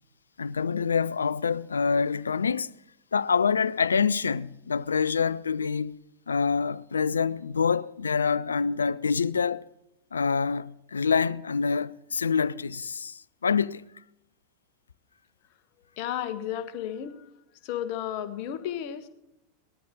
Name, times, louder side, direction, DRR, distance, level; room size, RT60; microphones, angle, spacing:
voice 1, 0.4-2.7 3.1-6.0 6.3-9.7 10.1-13.8, left 5 dB, 70° left, 0.4 m, -26 dB
voice 2, 16.0-17.3 17.6-19.1, left 10 dB, 45° left, 1.3 m, -33 dB
19.5 x 13.5 x 3.7 m
figure-of-eight pair, 90°, 0 cm